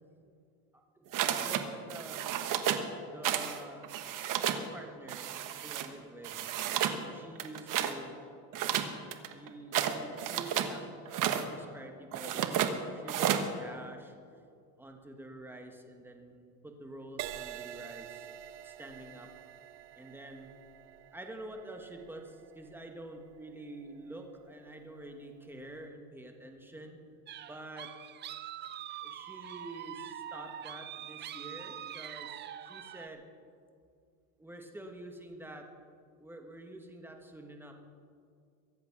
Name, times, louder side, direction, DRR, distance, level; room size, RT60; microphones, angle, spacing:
sound 1, 1.1-1.6 1.9-2.9 3.2-3.6 3.8-4.6 5.1-5.9 6.2-7.0 7.4-7.9 8.5-10.7 11.1-11.5 12.1-12.7 13.1-13.5, right 10 dB, 40° right, 1.2 m, -31 dB
voice 1, 1.3-2.3 3.0-4.1 4.5-5.3 5.6-6.4 6.9-8.2 9.3-10.9 11.2-14.1 14.8-18.3 18.6-19.3 19.9-20.5 21.1-27.0 27.5-27.9 29.0-33.2 34.4-35.7 36.2-37.7, right 1 dB, 5° right, 3 dB, 1.5 m, -47 dB
Crash cymbal, 17.2-24.8 25.5-25.8, right 12 dB, 60° right, 0.9 m, -48 dB
sound 2, 27.3-33.1, right 10 dB, 25° right, 0.4 m, -44 dB
23.0 x 8.2 x 6.1 m, 2.3 s
supercardioid pair, 135°, 47 cm